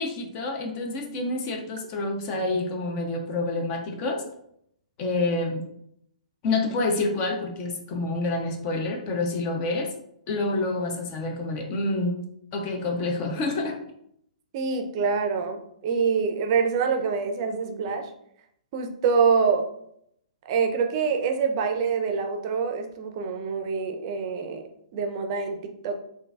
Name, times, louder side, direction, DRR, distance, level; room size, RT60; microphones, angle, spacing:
voice 1, 0.0-4.2 5.0-5.6 6.4-9.9 10.3-12.2 12.5-13.8, left 2 dB, 35° left, 2 dB, 0.7 m, -28 dB
voice 2, 14.5-18.1 18.7-19.7 20.5-24.6 24.9-26.0, right 5 dB, 40° right, 4 dB, 0.5 m, -25 dB
3.7 x 2.6 x 2.4 m, 0.71 s
hypercardioid pair, 130°, 4 cm